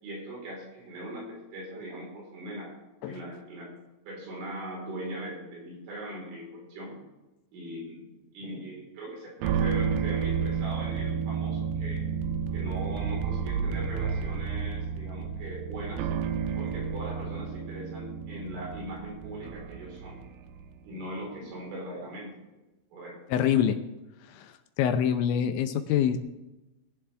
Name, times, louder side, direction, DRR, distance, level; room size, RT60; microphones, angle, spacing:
voice 1, 0.0-2.7 3.1-3.7 4.1-7.0 7.5-8.1 8.3-12.0 12.5-16.1 16.6-20.2 20.8-22.4 22.9-23.2, right 1 dB, 70° right, -3 dB, 6.7 m, -40 dB
sound 1, 9.4-20.8, right 6 dB, 90° right, 3.4 m, -31 dB
voice 2, 23.3-23.8 24.3-26.2, left 9 dB, 80° left, 8 dB, 2.9 m, -25 dB
20.0 x 11.0 x 3.4 m, 1.0 s
omnidirectional pair, 5.8 m